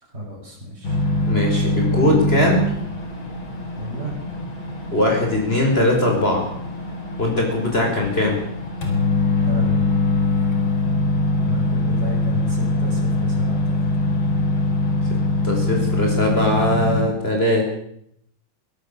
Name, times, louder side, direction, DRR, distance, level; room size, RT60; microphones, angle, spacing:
voice 1, 0.1-1.0 3.8-4.1 9.4-9.8 11.4-13.9, left 1 dB, 30° right, -3 dB, 6.3 m, -32 dB
sound 1, 0.8-17.0, left 3 dB, 80° left, 4.7 m, -23 dB
voice 2, 1.3-2.8 4.9-6.5 7.2-8.4 15.4-17.7, left 1 dB, 30° left, 0 dB, 5.7 m, -20 dB
23.0 x 17.5 x 7.1 m, 0.71 s
omnidirectional pair, 2.2 m